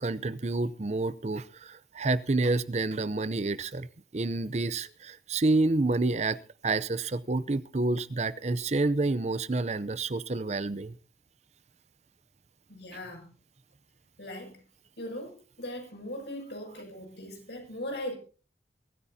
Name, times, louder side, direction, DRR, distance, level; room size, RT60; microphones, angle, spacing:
voice 1, 0.0-3.9 4.1-6.4 6.6-10.9, right 2 dB, 40° right, 15 dB, 0.6 m, -28 dB
voice 2, 12.7-13.3 14.2-14.6 15.0-18.2, left 1 dB, 75° left, 2 dB, 7.0 m, -39 dB
23.0 x 14.5 x 2.8 m, 0.35 s
head